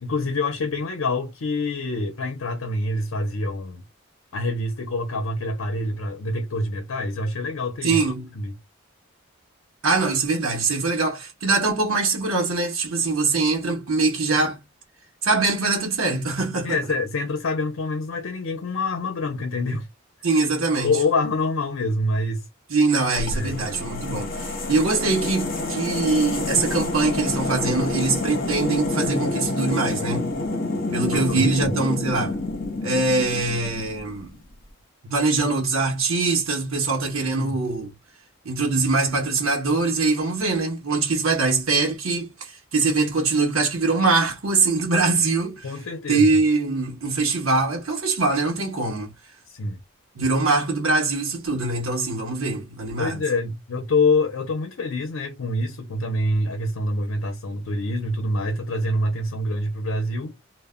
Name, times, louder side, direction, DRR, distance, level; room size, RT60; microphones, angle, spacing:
voice 1, 0.0-3.8 4.3-8.0 8.3-8.6 16.6-19.9 20.8-22.5 23.3-23.6 31.1-31.7 37.2-37.6 45.6-46.3 49.5-49.8 53.0-60.3, left 2 dB, 80° left, 0.6 m, -26 dB
voice 2, 7.8-8.3 9.8-14.6 15.2-16.8 20.2-20.9 22.7-30.3 30.9-32.4 32.8-34.4 35.0-37.9 38.4-45.7 46.1-49.1 50.2-53.2, right 3 dB, 90° right, 0.8 m, -23 dB
sound 1, 23.1-34.2, left 2 dB, 45° left, 0.8 m, -28 dB
2.1 x 2.1 x 3.5 m
head